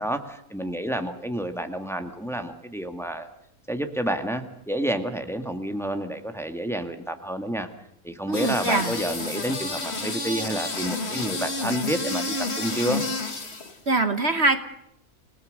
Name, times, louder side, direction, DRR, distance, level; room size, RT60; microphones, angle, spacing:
voice 1, 0.0-3.3 3.7-7.7 8.0-13.0, right 1 dB, ahead, 7 dB, 2.0 m, -29 dB
sound 1, 8.3-13.8, left 3 dB, 45° left, 2.6 m, -30 dB
voice 2, 8.3-8.9 13.9-14.6, right 2 dB, 50° right, 9 dB, 1.5 m, -23 dB
28.5 x 19.0 x 6.7 m, 0.76 s
omnidirectional pair, 1.5 m